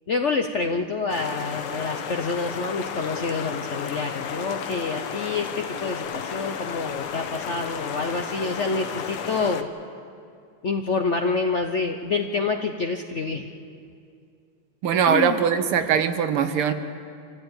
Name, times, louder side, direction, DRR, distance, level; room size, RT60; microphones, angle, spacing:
voice 1, 0.1-9.7 10.6-13.5 15.0-15.4, left 4 dB, 60° left, 4 dB, 0.7 m, -27 dB
sound 1, 1.1-9.6, left 7 dB, 85° left, 2.0 m, -33 dB
voice 2, 14.8-16.7, right 8 dB, 90° right, 8 dB, 2.1 m, -21 dB
26.0 x 15.0 x 8.9 m, 2.4 s
omnidirectional pair, 2.3 m